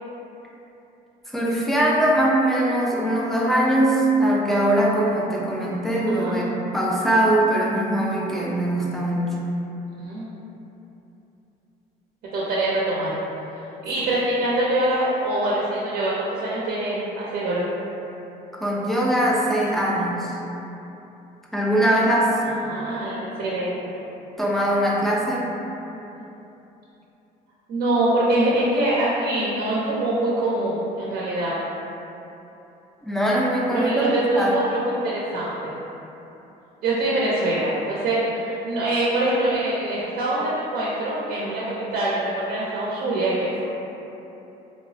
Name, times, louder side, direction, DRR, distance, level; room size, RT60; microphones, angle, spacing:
voice 1, 1.3-9.4 18.5-20.3 21.5-22.4 24.4-25.5 33.0-34.5, right 1 dB, ahead, -4 dB, 0.4 m, -21 dB
voice 2, 6.1-6.4 10.0-10.3 12.3-13.1 13.8-16.1 16.4-17.7 22.6-23.9 27.7-31.5 33.7-35.7 36.8-41.6 41.9-43.6, right 1 dB, 65° right, -7 dB, 0.5 m, -24 dB
3.3 x 2.0 x 2.5 m, 3.0 s
cardioid pair, 110°, 17 cm